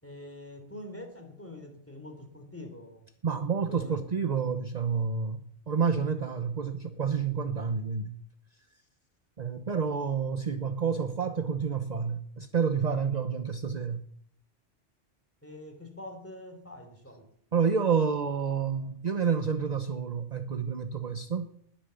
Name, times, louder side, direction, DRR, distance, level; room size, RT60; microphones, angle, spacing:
voice 1, 0.0-3.1 3.7-4.0 15.4-17.3, left 1 dB, 10° left, 5 dB, 3.3 m, -45 dB
voice 2, 3.2-8.2 9.4-14.0 17.5-21.5, right 6 dB, 40° right, 9 dB, 0.9 m, -29 dB
20.5 x 8.8 x 6.9 m, 0.69 s
omnidirectional pair, 1.2 m